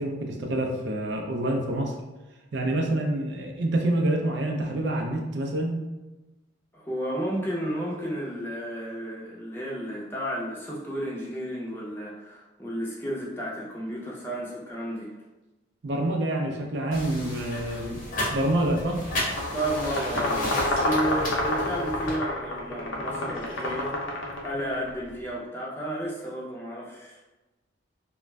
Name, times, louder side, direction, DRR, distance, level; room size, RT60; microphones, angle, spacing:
voice 1, 0.0-1.9 2.5-5.8 15.8-19.0, right 1 dB, 60° right, 2 dB, 0.4 m, -27 dB
voice 2, 6.7-15.1 19.5-27.2, right 1 dB, 10° left, -5 dB, 0.5 m, -32 dB
sound 1, 16.9-22.1, left 1 dB, 45° left, 0.7 m, -34 dB
sound 2, 19.2-24.9, left 1 dB, 75° left, 0.6 m, -29 dB
2.4 x 2.2 x 3.1 m, 1.1 s
head